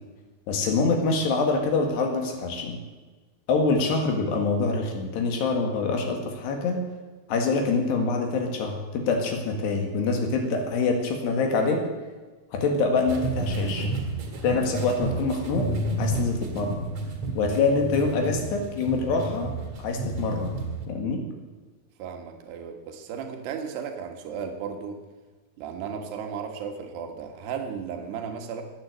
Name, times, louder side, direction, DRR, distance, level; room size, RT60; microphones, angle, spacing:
voice 1, 0.5-2.8 3.5-6.8 7.3-11.8 12.5-13.9 14.4-15.7 16.0-16.8 17.4-19.5 19.8-20.5 20.9-21.3, left 4 dB, 80° left, 3 dB, 4.1 m, -25 dB
sound 1, 13.1-20.9, right 2 dB, 50° right, 2.8 m, -31 dB
voice 2, 22.0-25.0 25.6-28.6, right 7 dB, 80° right, 4 dB, 3.7 m, -35 dB
17.0 x 9.7 x 8.0 m, 1.3 s
omnidirectional pair, 4.8 m